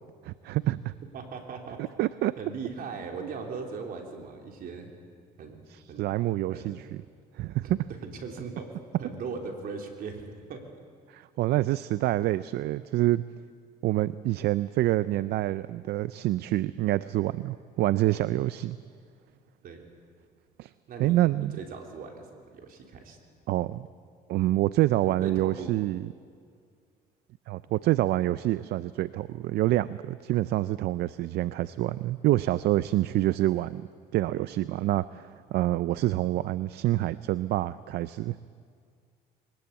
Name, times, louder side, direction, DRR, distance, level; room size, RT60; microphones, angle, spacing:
voice 1, 0.2-0.8 1.8-2.3 5.7-6.8 7.3-7.8 11.1-13.2 13.8-18.8 20.6-20.7 21.0-21.6 23.5-23.9 24.3-26.1 27.5-38.4, right 15 dB, 75° right, 16 dB, 0.5 m, -27 dB
voice 2, 1.1-1.8 2.4-4.9 5.4-6.0 6.5-6.8 7.6-7.7 8.0-8.7 9.0-10.6 19.6-19.8 20.9-22.3 22.5-23.2 25.2-25.8, right 5 dB, 60° right, 2 dB, 3.4 m, -39 dB
22.5 x 19.0 x 8.5 m, 2.1 s
cardioid pair, 110°, 17 cm